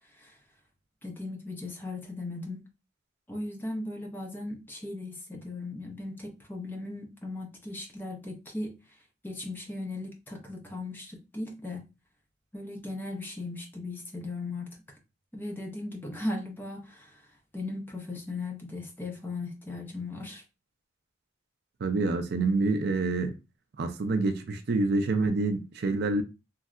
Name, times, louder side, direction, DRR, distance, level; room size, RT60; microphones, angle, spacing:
voice 1, 1.0-2.6 3.3-8.8 9.2-11.9 12.5-14.8 15.3-17.3 17.5-20.4, left 2 dB, 10° left, 0.7 m, -37 dB
voice 2, 21.8-23.3 23.8-26.2, right 3 dB, 55° right, 0.4 m, -27 dB
3.2 x 2.7 x 2.4 m
head